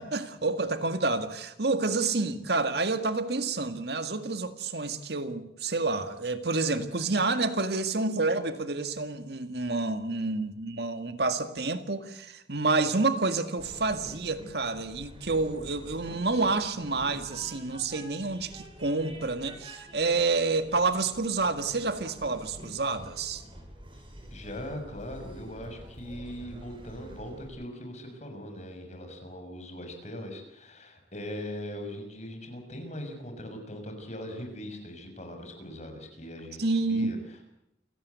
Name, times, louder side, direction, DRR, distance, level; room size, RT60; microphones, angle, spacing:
voice 1, 0.0-23.4 36.6-37.2, right 3 dB, 65° right, 1.9 m, -29 dB
Train, 13.6-27.5, equal, 30° right, 7.6 m, -47 dB
voice 2, 24.3-37.4, equal, 40° left, 6.4 m, -40 dB
28.5 x 17.5 x 8.2 m
head